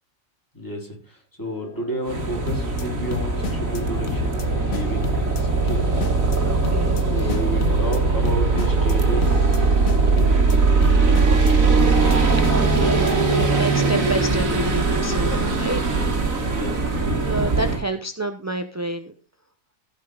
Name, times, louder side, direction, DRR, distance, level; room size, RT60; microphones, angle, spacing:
sound 1, 1.4-14.2, left 3 dB, 55° left, 1.6 m, -35 dB
voice 1, 1.4-5.8 7.1-9.9 11.2-11.5 15.2-16.1 16.5-16.8, equal, 15° left, -1 dB, 4.0 m, -32 dB
sound 2, 2.1-17.8, right 4 dB, 80° right, 2.3 m, -20 dB
sound 3, 2.5-2.8 3.1-3.8 4.1-4.4 4.7-5.4 5.7-6.4 6.6-7.0 7.3-8.0 8.3-8.9 9.2-9.6 9.9-10.6 10.8-11.5 11.8-12.2 12.4-13.1 13.4-13.7, left 7 dB, 85° left, 1.6 m, -31 dB
voice 2, 6.4-7.4 12.5-15.8 17.2-19.1, right 2 dB, 20° right, 7 dB, 0.5 m, -29 dB
15.5 x 5.5 x 4.9 m, 0.37 s
omnidirectional pair, 1.4 m